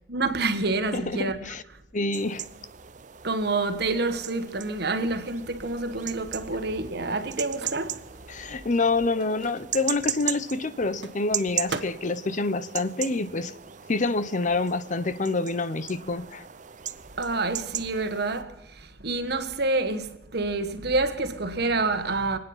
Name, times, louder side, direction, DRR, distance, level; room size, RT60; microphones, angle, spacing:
voice 1, 0.1-1.5 3.2-8.1 17.2-22.4, right 3 dB, 65° right, 1.4 m, -28 dB
voice 2, 0.9-1.6 1.9-2.5 8.3-13.5 13.9-16.4, left 3 dB, 45° left, 0.8 m, -27 dB
sound 1, 2.1-18.4, right 10 dB, 45° right, 0.7 m, -38 dB
Microwave oven, 6.7-13.9 14.1-16.0, right 4 dB, 85° right, 1.3 m, -44 dB
25.0 x 9.5 x 5.6 m
head